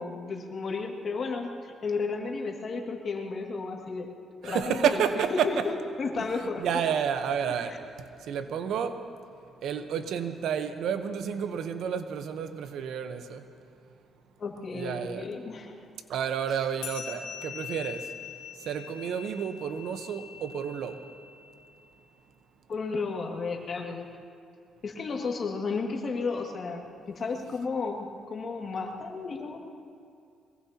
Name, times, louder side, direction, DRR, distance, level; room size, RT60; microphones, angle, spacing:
voice 1, 0.0-4.1 4.4-6.7 7.7-7.8 14.4-15.9 16.5-16.6 22.7-24.1 24.8-29.6, left 4 dB, 50° left, 1 dB, 2.2 m, -33 dB
voice 2, 4.4-5.5 6.6-7.7 8.3-8.9 9.6-13.4 14.7-15.2 16.1-18.0 18.7-21.0, right 8 dB, 75° right, 8 dB, 1.0 m, -30 dB
sound 1, 16.8-21.7, left 8 dB, 90° left, 1.7 m, -43 dB
22.5 x 21.5 x 2.9 m, 2.4 s
cardioid pair, 90°, 0 cm